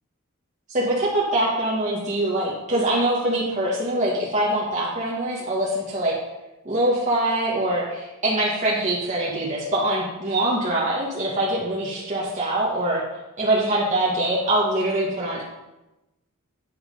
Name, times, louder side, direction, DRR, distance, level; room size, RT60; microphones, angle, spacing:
voice 1, 0.7-6.1 6.6-13.0 13.4-15.4, right 1 dB, 35° right, -5 dB, 1.5 m, -23 dB
8.8 x 5.7 x 5.4 m, 1.0 s
head